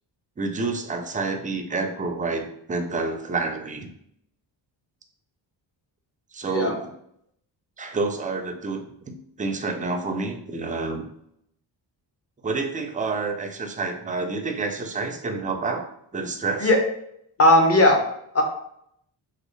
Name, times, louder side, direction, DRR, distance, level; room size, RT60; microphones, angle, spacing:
voice 1, 0.4-3.9 6.3-6.8 7.8-11.1 12.4-16.7, right 3 dB, 20° right, 5 dB, 0.4 m, -29 dB
voice 2, 17.4-18.0 18.3-18.4, left 1 dB, 30° left, 2 dB, 0.8 m, -17 dB
3.2 x 2.4 x 3.1 m, 0.73 s
cardioid pair, 95°, 46 cm